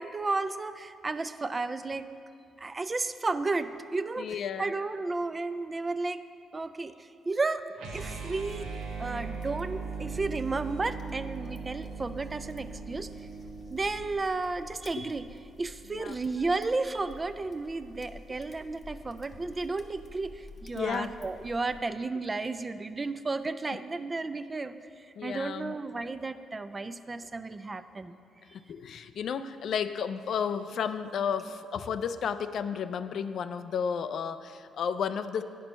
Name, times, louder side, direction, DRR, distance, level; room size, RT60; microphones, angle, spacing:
voice 1, 0.0-2.1 2.6-6.2 6.5-7.6 7.9-8.7 9.0-13.3 13.7-15.3 15.6-28.2, right 3 dB, 25° right, 11 dB, 0.3 m, -33 dB
voice 2, 4.2-4.7 14.9-15.1 15.9-16.1 20.8-21.1 25.2-25.7 28.5-35.4, left 7 dB, 65° left, 11 dB, 0.3 m, -32 dB
sound 1, 7.7-13.8, right 5 dB, 85° right, 0.8 m, -39 dB
sound 2, 8.4-21.8, left 2 dB, 50° left, 0.8 m, -50 dB
10.0 x 4.4 x 5.3 m, 2.4 s
cardioid pair, 90°, 0 cm